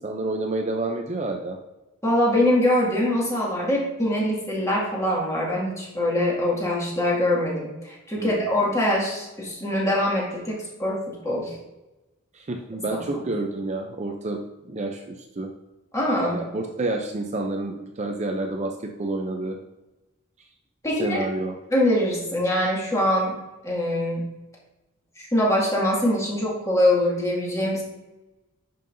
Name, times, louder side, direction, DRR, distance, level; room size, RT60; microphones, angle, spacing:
voice 1, 0.0-1.6 8.2-8.5 12.3-15.5 16.3-19.6 21.0-21.6, right 2 dB, 35° right, 3 dB, 0.5 m, -29 dB
voice 2, 2.0-11.6 12.9-13.2 15.9-16.4 20.8-21.3 21.7-23.4 23.6-24.2 25.2-27.8, left 1 dB, 15° left, -4 dB, 2.0 m, -23 dB
11.0 x 5.4 x 2.6 m, 1.0 s
head